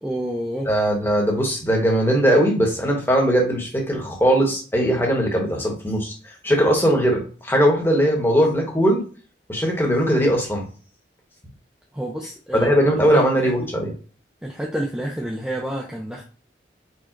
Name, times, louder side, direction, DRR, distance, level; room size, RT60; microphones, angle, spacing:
voice 1, 0.0-0.7 11.9-12.7 13.1-13.7 14.4-16.2, right 1 dB, 5° right, -3 dB, 0.5 m, -29 dB
voice 2, 0.7-9.0 9.5-10.6 12.5-13.9, equal, 10° left, 0 dB, 1.1 m, -20 dB
4.6 x 2.3 x 4.5 m, 0.38 s
head